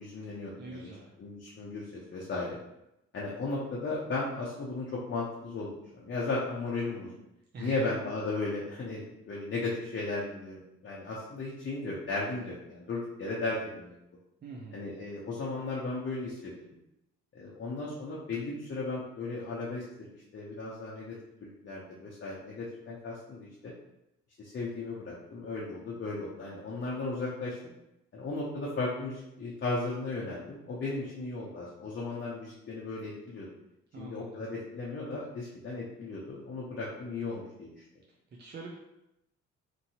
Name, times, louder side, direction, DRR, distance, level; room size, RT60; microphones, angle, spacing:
voice 1, 0.0-0.9 1.2-2.6 3.1-7.2 7.6-13.9 14.7-16.6 17.3-23.7 24.4-27.6 28.1-33.5 34.0-37.8, left 3 dB, 40° left, -5 dB, 0.7 m, -36 dB
voice 2, 0.6-1.1 7.5-7.9 14.4-14.8 33.9-34.4 38.4-38.8, right 3 dB, 35° right, -2 dB, 0.5 m, -44 dB
3.0 x 2.7 x 2.7 m, 0.88 s
cardioid pair, 90°, 30 cm